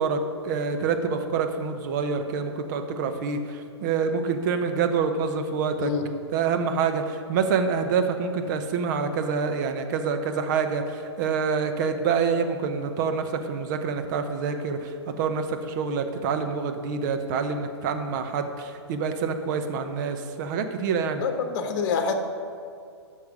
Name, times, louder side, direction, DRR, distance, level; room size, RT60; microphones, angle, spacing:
voice 1, 0.0-5.9 6.3-21.2, right 5 dB, 40° right, 7 dB, 1.0 m, -27 dB
voice 2, 21.2-22.1, left 6 dB, 45° left, 6 dB, 1.2 m, -26 dB
11.5 x 6.6 x 5.4 m, 2.3 s
figure-of-eight pair, 115°, 15 cm